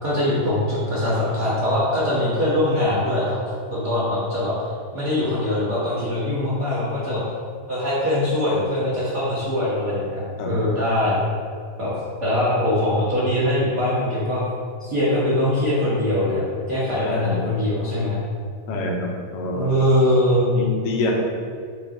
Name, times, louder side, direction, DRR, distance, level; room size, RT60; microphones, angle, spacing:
voice 1, 0.0-3.4 3.7-7.2 7.7-11.2 11.8-11.9 12.2-14.4 14.8-18.2 19.5-20.5, left 1 dB, 40° right, -10 dB, 1.5 m, -22 dB
voice 2, 17.0-17.5 18.7-19.6 20.5-21.1, left 2 dB, 80° left, -1 dB, 2.6 m, -26 dB
8.5 x 3.9 x 3.9 m, 2.1 s
omnidirectional pair, 4.0 m